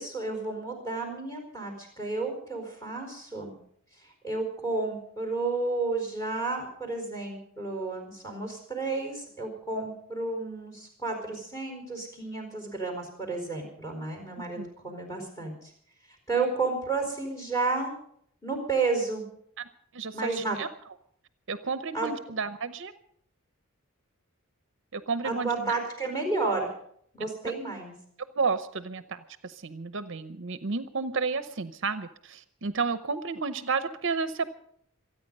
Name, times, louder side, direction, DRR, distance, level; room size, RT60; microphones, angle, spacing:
voice 1, 0.0-3.5 4.0-15.7 16.3-17.9 18.4-19.2 20.1-20.6 21.9-22.1 25.2-26.7 27.1-27.9, right 3 dB, 15° left, 3 dB, 4.6 m, -31 dB
voice 2, 19.6-20.7 21.5-22.9 24.9-25.7 27.2-27.3 28.3-34.5, right 4 dB, 55° right, 11 dB, 0.8 m, -32 dB
26.5 x 9.6 x 5.4 m, 0.66 s
head